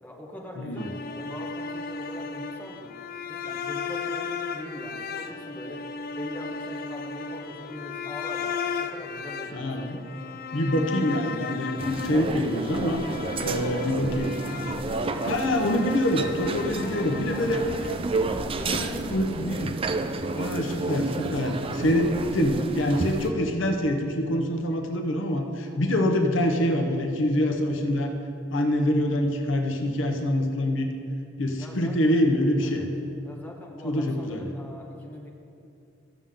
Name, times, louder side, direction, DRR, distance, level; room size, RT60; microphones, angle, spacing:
voice 1, 0.0-2.9 3.3-5.8 6.1-10.4 11.8-12.1 13.1-13.9 14.4-15.6 16.4-17.8 18.4-19.6 22.9-23.2 25.6-25.9 31.6-32.2 32.6-32.9 33.2-35.3, left 1 dB, 10° left, -2 dB, 1.3 m, -42 dB
voice 2, 0.6-0.9 9.5-10.0 10.5-13.0 13.4-14.3 15.2-17.6 18.3-19.7 20.3-28.1 28.5-30.9 31.4-32.9 33.8-34.5, left 1 dB, 75° left, 4 dB, 0.8 m, -25 dB
sound 1, 0.8-17.9, left 5 dB, 50° left, 0.4 m, -35 dB
sound 2, 11.8-23.3, right 3 dB, 30° right, 0.4 m, -31 dB
14.5 x 7.0 x 3.7 m, 2.6 s
head